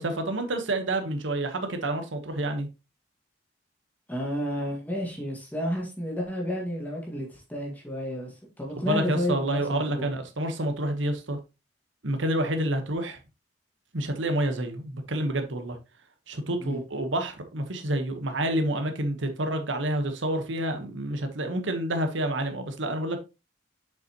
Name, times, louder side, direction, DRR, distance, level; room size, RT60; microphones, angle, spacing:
voice 1, 0.0-2.7 8.9-11.4 12.0-13.2 13.9-15.8 16.3-23.2, right 1 dB, 80° right, 1.2 m, -28 dB
voice 2, 4.1-10.1 16.6-16.8, equal, 10° left, 1.9 m, -31 dB
7.0 x 5.7 x 3.0 m
head